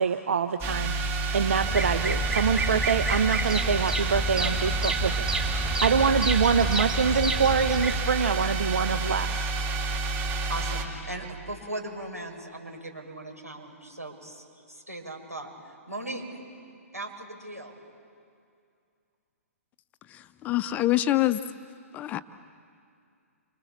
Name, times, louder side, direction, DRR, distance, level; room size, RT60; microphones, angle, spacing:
voice 1, 0.0-5.2 5.8-9.5, right 6 dB, 60° right, 8 dB, 1.0 m, -25 dB
sound 1, 0.6-10.8, right 3 dB, 25° right, 3.2 m, -29 dB
Bird vocalization bird call bird song, 1.6-8.0, right 1 dB, 5° right, 2.4 m, -30 dB
voice 2, 10.5-15.5 15.9-16.2 16.9-17.7, right 1 dB, 90° right, 0 dB, 6.9 m, -38 dB
voice 3, 20.4-21.4 21.9-22.2, left 15 dB, 20° left, 13 dB, 0.8 m, -24 dB
29.5 x 26.5 x 7.3 m, 2.3 s
figure-of-eight pair, 120°, 8 cm